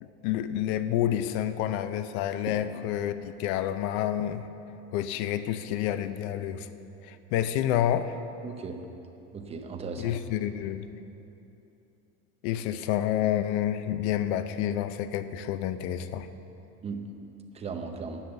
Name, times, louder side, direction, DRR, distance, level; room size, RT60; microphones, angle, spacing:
voice 1, 0.0-4.4 4.9-6.7 7.0-8.2 10.0-10.9 12.4-16.3, left 11 dB, 70° left, 11 dB, 0.7 m, -29 dB
voice 2, 8.4-8.8 9.3-10.1 16.8-17.0 17.5-18.2, right 5 dB, 20° right, 4 dB, 0.7 m, -36 dB
10.0 x 8.5 x 7.9 m, 2.9 s
cardioid pair, 175°, 34 cm